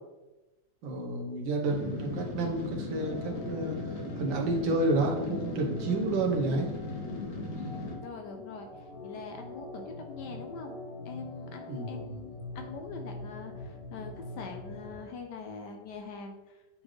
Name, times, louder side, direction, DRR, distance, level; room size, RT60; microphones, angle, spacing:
voice 1, 0.8-6.7 11.7-12.1, right 2 dB, 80° right, 1 dB, 1.7 m, -30 dB
sound 1, 1.7-8.0, left 2 dB, 55° left, 1.5 m, -37 dB
Organ, 2.9-15.1, left 2 dB, 30° left, 1.6 m, -44 dB
voice 2, 7.5-10.8 11.0-16.8, left 4 dB, 70° left, 3 dB, 1.2 m, -43 dB
8.8 x 3.9 x 3.2 m, 1.1 s
omnidirectional pair, 2.0 m